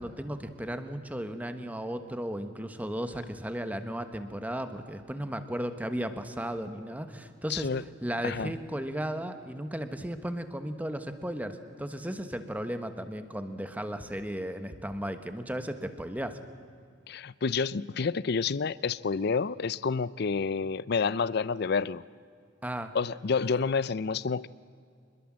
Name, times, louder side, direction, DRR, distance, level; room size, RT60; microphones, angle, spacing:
voice 1, 0.0-7.7 8.0-16.4 22.6-23.0, equal, 10° right, 8 dB, 1.3 m, -35 dB
voice 2, 7.5-7.8 8.2-8.5 17.1-22.0 22.9-24.5, left 5 dB, 60° left, 19 dB, 0.5 m, -29 dB
26.0 x 21.0 x 7.5 m, 2.3 s
head